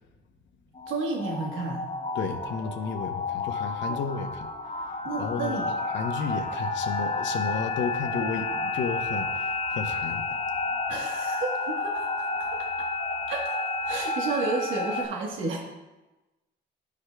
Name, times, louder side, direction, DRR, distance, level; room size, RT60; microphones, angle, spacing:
sound 1, 0.7-15.1, left 3 dB, 30° left, 0.8 m, -31 dB
voice 1, 0.9-1.8 3.9-4.0 5.0-5.7 10.9-12.9 13.3-13.6 13.8-15.6, right 3 dB, 80° right, 0 dB, 1.2 m, -32 dB
voice 2, 2.1-4.5 5.2-10.4, left 6 dB, 70° left, 4 dB, 0.7 m, -33 dB
11.5 x 4.9 x 2.2 m, 1.1 s
cardioid pair, 90°, 20 cm